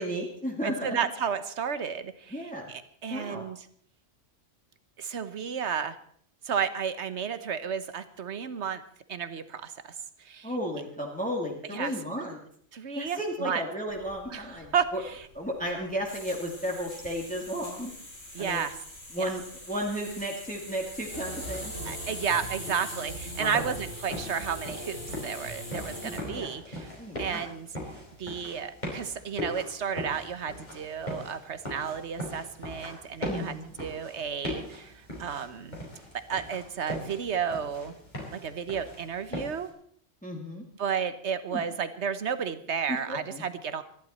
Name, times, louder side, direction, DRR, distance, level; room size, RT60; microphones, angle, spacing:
voice 1, 0.0-1.0 2.3-2.6 3.1-3.4 10.4-12.4 13.0-15.0 15.3-17.9 18.4-18.6 19.1-19.4 19.7-21.7 23.4-23.7 26.0-26.6 27.0-27.4 33.3-33.7 40.2-40.6 41.5-41.6 42.9-43.4, equal, 5° left, -1 dB, 2.3 m, -34 dB
voice 2, 0.6-3.7 5.0-6.0 6.4-8.8 9.1-9.9 10.2-10.5 11.6-11.9 12.7-13.6 14.3-15.3 18.3-18.8 19.2-19.3 21.8-26.9 27.2-27.7 28.2-35.8 36.3-37.9 38.3-39.7 40.8-43.8, right 7 dB, 65° right, 12 dB, 1.3 m, -32 dB
sound 1, 13.9-26.2, left 1 dB, 60° left, 5.5 m, -43 dB
sound 2, 21.1-26.4, right 1 dB, 90° right, 3.3 m, -41 dB
sound 3, 21.3-39.7, left 1 dB, 35° left, 5.1 m, -40 dB
26.0 x 11.5 x 4.4 m, 0.63 s
omnidirectional pair, 1.3 m